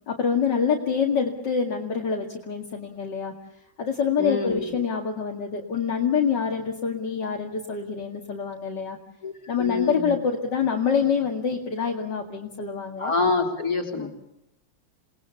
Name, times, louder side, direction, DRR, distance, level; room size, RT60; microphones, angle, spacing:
voice 1, 0.1-3.3 3.8-9.0 9.5-13.1 14.0-14.1, left 6 dB, 65° left, 1 dB, 2.8 m, -26 dB
voice 2, 4.2-4.7 9.2-9.3 9.6-10.1 13.0-14.1, left 4 dB, 45° left, 4 dB, 4.0 m, -26 dB
29.0 x 20.5 x 7.1 m, 0.86 s
omnidirectional pair, 2.1 m